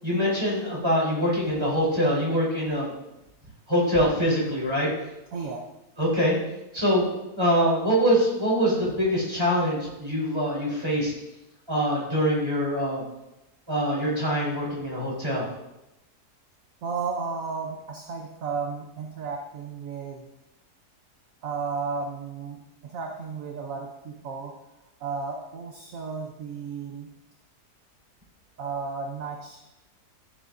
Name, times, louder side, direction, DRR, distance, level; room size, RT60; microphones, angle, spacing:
voice 1, 0.0-2.9 3.7-4.9 6.0-6.4 6.7-11.1 11.7-13.0 13.7-15.5, equal, 15° right, -6 dB, 4.0 m, -24 dB
voice 2, 5.3-5.7 16.8-20.3 21.4-24.6 25.0-27.1 28.6-29.6, right 4 dB, 60° right, 2 dB, 1.2 m, -33 dB
14.0 x 8.6 x 2.7 m, 0.93 s
omnidirectional pair, 1.7 m